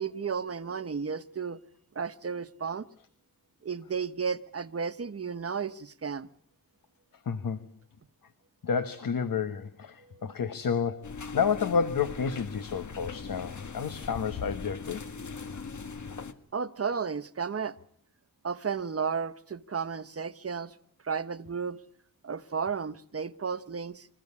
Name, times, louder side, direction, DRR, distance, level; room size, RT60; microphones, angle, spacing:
voice 1, 0.0-1.6 1.9-2.9 3.6-6.3 10.1-10.2 16.5-17.8 18.4-20.7 21.0-21.8 22.2-24.1, right 6 dB, 40° right, 1.2 m, -33 dB
voice 2, 7.2-7.7 8.6-15.0, left 6 dB, 70° left, 1.3 m, -30 dB
sound 1, 11.0-16.3, left 5 dB, 55° left, 1.7 m, -40 dB
26.5 x 14.5 x 9.8 m
wide cardioid pair, 90°, 35 cm